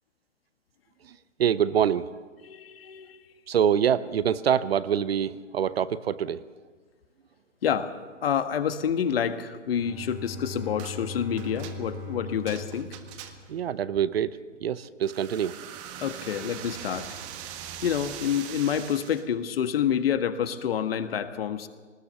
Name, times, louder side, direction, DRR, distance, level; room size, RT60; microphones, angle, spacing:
voice 1, 1.0-2.1 3.5-6.4 13.5-15.8, right 9 dB, 50° right, 16 dB, 0.8 m, -25 dB
voice 2, 2.4-3.2 7.6-7.9 8.2-12.9 16.0-17.1 17.8-21.7, left 8 dB, 50° left, 9 dB, 1.7 m, -28 dB
Bowed string instrument, 9.7-14.0, left 3 dB, 5° right, 2.2 m, -40 dB
sound 1, 10.8-11.0 11.4-13.6 15.0-19.3, right 9 dB, 25° right, 1.5 m, -42 dB
21.5 x 19.5 x 7.1 m, 1.5 s
figure-of-eight pair, 135°, 39 cm